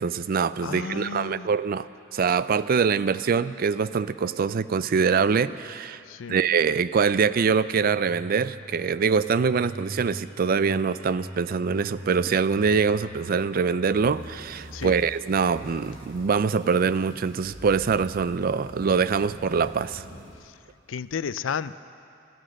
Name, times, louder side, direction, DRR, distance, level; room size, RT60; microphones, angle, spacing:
voice 1, 0.0-1.9 2.1-6.0 6.3-20.0, right 5 dB, 50° right, 15 dB, 0.4 m, -24 dB
voice 2, 0.6-1.5 6.1-6.4 14.7-14.9 20.9-21.8, left 6 dB, 90° left, 16 dB, 0.4 m, -32 dB
sound 1, 7.8-20.2 20.5-20.6, right 1 dB, 25° right, 3.2 m, -43 dB
sound 2, 14.1-20.4, equal, 90° right, 2.6 m, -47 dB
17.0 x 13.0 x 6.5 m, 2.5 s
head